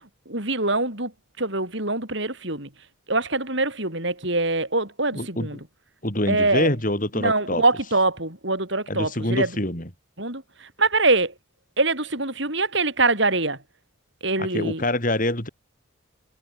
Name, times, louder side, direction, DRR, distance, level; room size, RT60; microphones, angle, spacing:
voice 1, 0.3-1.1 1.4-2.7 3.1-5.6 6.3-6.7 7.2-9.5 10.2-10.4 10.8-11.3 11.8-13.6 14.2-14.8, right 2 dB, 55° right, 6.7 m, -23 dB
voice 2, 5.1-5.6 6.0-7.6 8.9-9.9 14.4-15.5, left 1 dB, 40° left, 5.6 m, -25 dB
head